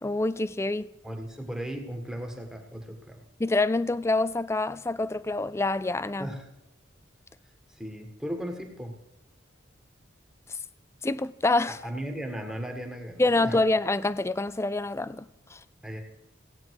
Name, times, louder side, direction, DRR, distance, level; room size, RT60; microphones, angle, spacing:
voice 1, 0.0-0.9 3.4-6.3 11.0-11.8 13.2-15.2 15.5-15.6, left 2 dB, 15° left, 0.4 m, -26 dB
voice 2, 1.0-3.2 6.2-6.5 7.7-9.0 11.7-13.6 15.8-16.0, equal, 5° right, 1.7 m, -36 dB
17.0 x 9.1 x 4.8 m
head